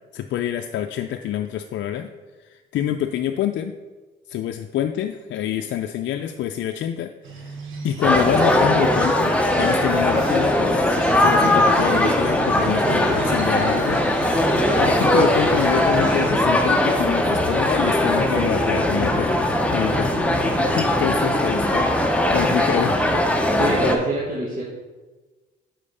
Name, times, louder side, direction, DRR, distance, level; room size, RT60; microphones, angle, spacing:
voice 1, 0.1-2.1 2.4-3.7 4.3-7.6 7.8-19.4 19.7-20.1 20.7-21.9 22.3-23.3, left 10 dB, 70° left, 6 dB, 0.4 m, -26 dB
Crow, 7.2-16.3, right 3 dB, 90° right, 1.0 m, -37 dB
sound 1, 8.0-24.0, left 1 dB, 5° left, 0.8 m, -20 dB
voice 2, 12.8-13.2 14.6-14.8 18.1-19.2 23.6-24.6, right 1 dB, 45° right, -5 dB, 1.5 m, -27 dB
5.5 x 5.1 x 5.4 m, 1.3 s
cardioid pair, 90°, 20 cm